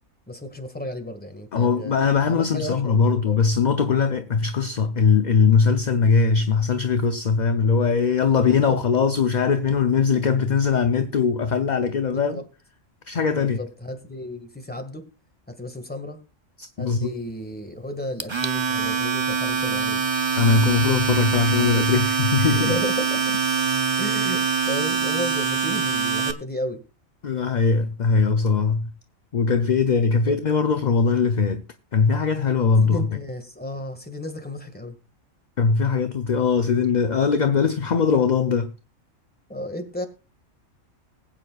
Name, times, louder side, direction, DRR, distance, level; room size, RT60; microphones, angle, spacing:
voice 1, 0.3-2.0 2.3-3.4 8.5-8.8 12.1-12.4 13.3-15.1 15.5-16.2 16.8-20.0 22.5-23.3 24.0-26.8 30.2-30.4 32.8-34.9 39.5-40.1, left 1 dB, 5° left, 1.7 m, -33 dB
voice 2, 1.5-12.4 13.1-13.6 16.6-17.1 20.4-22.7 27.2-28.9 29.3-31.6 31.9-33.0 35.6-38.7, left 5 dB, 45° left, 0.6 m, -20 dB
Domestic sounds home sounds, 18.2-26.3, right 5 dB, 25° right, 0.7 m, -24 dB
20.5 x 8.8 x 2.4 m
omnidirectional pair, 1.4 m